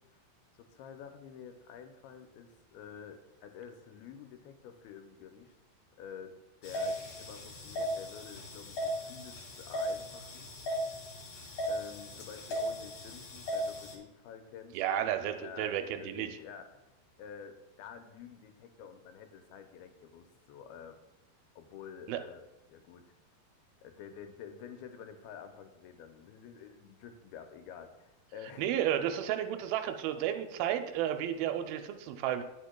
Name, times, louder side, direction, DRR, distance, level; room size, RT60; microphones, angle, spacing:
voice 1, 0.5-5.6 6.0-10.5 11.7-21.0 21.6-22.4 22.7-23.1 23.8-28.8, left 7 dB, 85° left, 6 dB, 2.6 m, -49 dB
sound 1, 6.6-13.9, equal, 60° left, 1.2 m, -37 dB
voice 2, 14.7-16.3 22.1-22.2 28.6-32.4, right 10 dB, 80° right, 7 dB, 2.3 m, -32 dB
10.0 x 8.2 x 2.2 m, 0.99 s
omnidirectional pair, 4.4 m